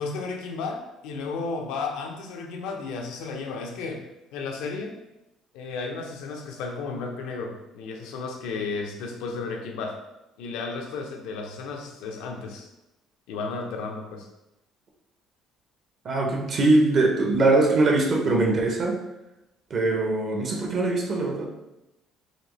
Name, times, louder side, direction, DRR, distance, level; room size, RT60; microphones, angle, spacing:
voice 1, 0.0-4.0 4.3-5.0 5.5-10.0 10.4-12.7 13.3-14.3, left 4 dB, 90° left, 2 dB, 0.6 m, -33 dB
voice 2, 16.0-19.0 19.7-21.5, right 2 dB, 45° right, 1 dB, 0.7 m, -22 dB
4.2 x 2.9 x 3.1 m, 0.95 s
cardioid pair, 135°, 0 cm